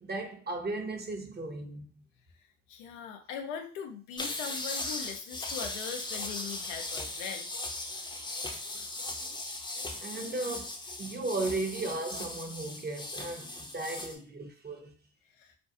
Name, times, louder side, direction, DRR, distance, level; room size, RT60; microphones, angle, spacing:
voice 1, 0.0-1.9 10.0-10.7 11.0-14.9, right 2 dB, 25° right, 0.7 m, -35 dB
voice 2, 2.7-7.5 9.2-9.4 10.2-10.4 14.2-14.3 15.4-15.5, left 7 dB, 90° left, 0.5 m, -40 dB
sound 1, 4.2-14.2, left 2 dB, 10° left, 0.5 m, -38 dB
2.5 x 2.3 x 2.6 m
hypercardioid pair, 55°, 36 cm